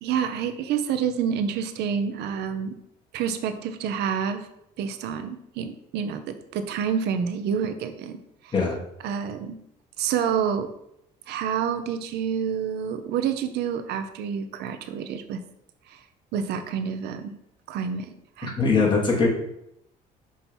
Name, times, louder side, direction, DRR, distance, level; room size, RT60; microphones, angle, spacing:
voice 1, 0.0-2.8 3.1-4.5 4.8-8.2 8.4-8.5 9.0-9.6 10.0-10.7 11.3-15.4 15.9-16.0 16.3-17.4 17.7-18.5, right 7 dB, 75° right, 9 dB, 0.6 m, -28 dB
voice 2, 18.4-19.3, left 4 dB, 30° left, -3 dB, 1.9 m, -21 dB
6.2 x 2.8 x 5.3 m, 0.79 s
cardioid pair, 110°, 17 cm